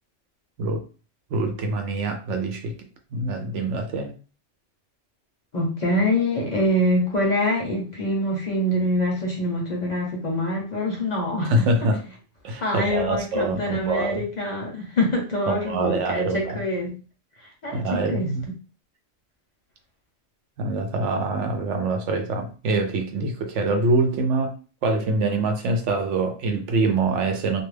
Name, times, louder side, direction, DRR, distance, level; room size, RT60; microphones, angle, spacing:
voice 1, 1.3-2.8 3.1-4.1 11.4-12.0 12.4-14.2 15.5-16.6 17.7-18.4 20.6-24.5 24.8-27.6, right 2 dB, 75° right, 0.9 m, -24 dB
voice 2, 5.5-11.7 12.6-16.9 17.6-18.3, left 1 dB, 45° left, 0.7 m, -25 dB
2.3 x 2.2 x 3.2 m
omnidirectional pair, 1.3 m